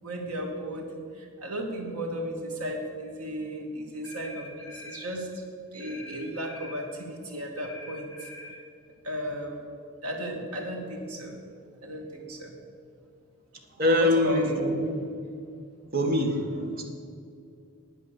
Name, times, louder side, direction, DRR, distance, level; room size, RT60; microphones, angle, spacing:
voice 1, 0.0-5.4 5.7-8.3 9.0-9.7 10.0-11.4 11.8-12.5 13.9-14.6, right 1 dB, 80° right, 1 dB, 2.3 m, -34 dB
sound 1, 4.0-5.0 5.8-6.8 7.6-8.6, left 2 dB, 55° left, 3.4 m, -44 dB
voice 2, 13.8-15.0 15.9-16.5 16.7-16.8, left 1 dB, 40° right, 2 dB, 1.8 m, -24 dB
9.7 x 9.4 x 7.6 m, 2.4 s
head